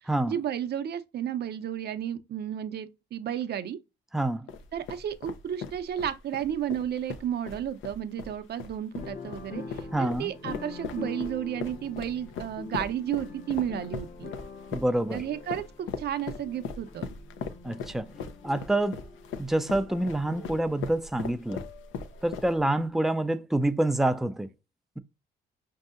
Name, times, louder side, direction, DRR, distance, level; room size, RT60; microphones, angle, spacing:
voice 1, 0.0-3.8 4.7-14.3 15.1-17.1, right 10 dB, 55° right, 0.5 m, -33 dB
voice 2, 4.1-4.5 9.9-10.3 14.7-15.2 17.6-18.1 18.4-19.0 19.4-21.6 22.2-24.5, right 1 dB, ahead, 0.4 m, -27 dB
sound 1, 4.5-22.8, left 6 dB, 80° left, 0.6 m, -39 dB
sound 2, 8.9-22.6 22.9-23.0, left 3 dB, 45° left, 0.8 m, -44 dB
5.3 x 2.7 x 2.4 m
cardioid pair, 90°, 20 cm